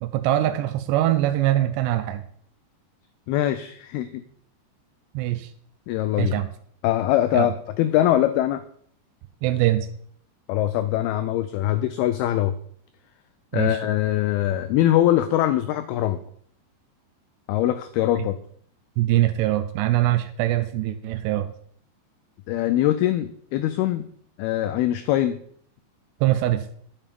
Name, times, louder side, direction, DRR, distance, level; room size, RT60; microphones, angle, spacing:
voice 1, 0.0-2.2 5.1-5.5 6.2-6.5 7.3-7.5 9.4-9.9 13.5-13.8 19.0-21.5 26.2-26.7, right 14 dB, 80° right, 9 dB, 2.7 m, -22 dB
voice 2, 3.3-4.2 5.9-6.4 6.8-8.6 10.5-12.6 13.5-16.2 17.5-18.4 22.5-24.1 24.4-25.4, left 13 dB, 85° left, 11 dB, 2.2 m, -22 dB
11.0 x 7.3 x 5.2 m, 0.62 s
omnidirectional pair, 5.1 m